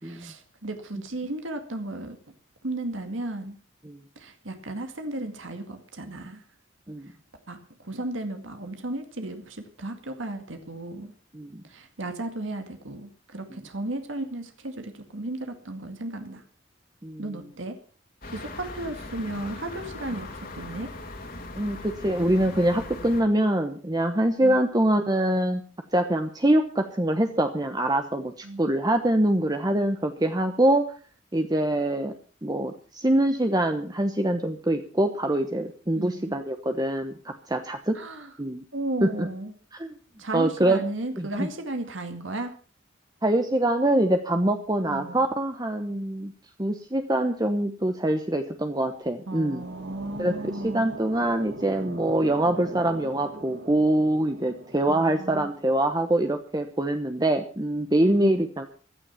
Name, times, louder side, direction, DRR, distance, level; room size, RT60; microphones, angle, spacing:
voice 1, 0.0-2.2 2.6-3.6 4.2-6.4 7.5-11.1 11.6-16.4 17.2-17.8 18.2-20.3 20.5-20.9 24.4-24.6 28.4-28.6 36.0-36.3 37.9-38.3 38.7-39.5 40.2-42.5 44.9-45.2 49.3-50.9 54.9-55.5 58.1-58.4, right 2 dB, 80° right, 6 dB, 2.1 m, -34 dB
sound 1, 18.2-23.2, left 2 dB, 45° left, 2.8 m, -39 dB
voice 2, 21.5-25.6 25.9-30.9 31.3-32.1 32.4-37.9 38.4-38.6 39.0-39.3 39.8-39.9 40.3-40.8 41.2-41.5 43.2-46.3 46.6-49.6 50.2-58.7, right 1 dB, 20° right, 6 dB, 1.0 m, -24 dB
sound 2, 49.1-56.2, right 2 dB, 55° right, 1.8 m, -42 dB
15.5 x 12.0 x 5.7 m, 0.40 s
head